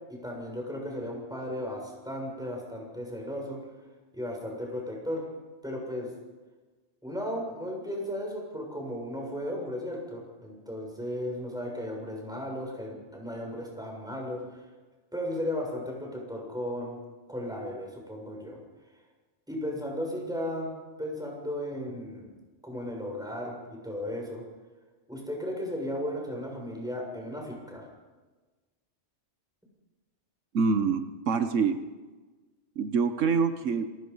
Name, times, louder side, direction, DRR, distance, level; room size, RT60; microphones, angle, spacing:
voice 1, 0.1-3.6 4.1-5.3 5.6-6.1 7.0-14.7 15.1-17.0 17.3-18.6 19.5-20.7 21.0-22.3 22.6-24.4 25.1-27.9, left 1 dB, 5° right, -1 dB, 7.0 m, -35 dB
voice 2, 30.5-31.8 32.8-33.9, right 5 dB, 85° right, 9 dB, 1.4 m, -25 dB
27.5 x 19.5 x 5.6 m, 1.3 s
omnidirectional pair, 1.3 m